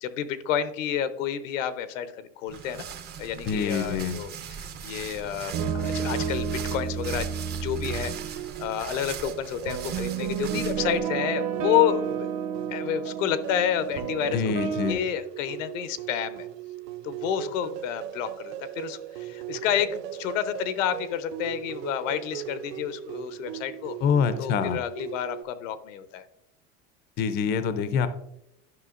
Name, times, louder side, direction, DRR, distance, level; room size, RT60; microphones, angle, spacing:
voice 1, 0.0-2.8 3.2-4.3 4.6-7.3 7.6-12.0 12.7-16.5 17.0-24.0 24.4-26.2, left 10 dB, 90° left, 12 dB, 0.8 m, -30 dB
sound 1, 2.5-11.0, right 7 dB, 25° right, 0.5 m, -39 dB
voice 2, 3.5-4.2 14.3-15.0 24.0-24.8 27.2-28.1, left 6 dB, 30° left, 12 dB, 0.4 m, -25 dB
sound 2, 5.5-8.5 9.7-14.9, right 7 dB, 45° right, 1.0 m, -31 dB
sound 3, 7.8-25.4, right 13 dB, 85° right, 0.5 m, -39 dB
11.0 x 5.7 x 2.4 m, 0.83 s
supercardioid pair, 140°, 37 cm